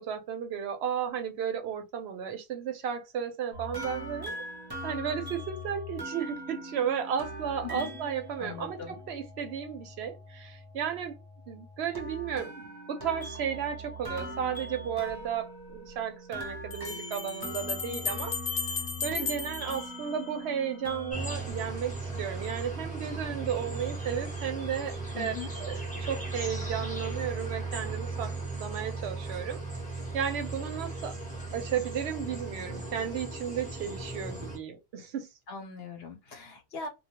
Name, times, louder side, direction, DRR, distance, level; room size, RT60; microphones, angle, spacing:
voice 1, 0.0-4.4 4.8-11.2 11.5-18.4 19.0-25.3 25.6-29.6 30.1-31.2 31.5-35.3, right 8 dB, 80° right, 0.9 m, -34 dB
sound 1, 3.5-21.5, equal, 25° right, 0.7 m, -41 dB
voice 2, 7.6-8.0 8.4-9.0 25.1-25.5 35.5-36.9, left 5 dB, 65° left, 1.0 m, -40 dB
sound 2, 15.1-15.2 16.7-20.7, left 5 dB, 45° left, 0.7 m, -35 dB
sound 3, 21.1-34.6, right 3 dB, 10° left, 0.8 m, -37 dB
2.2 x 2.2 x 2.8 m
omnidirectional pair, 1.1 m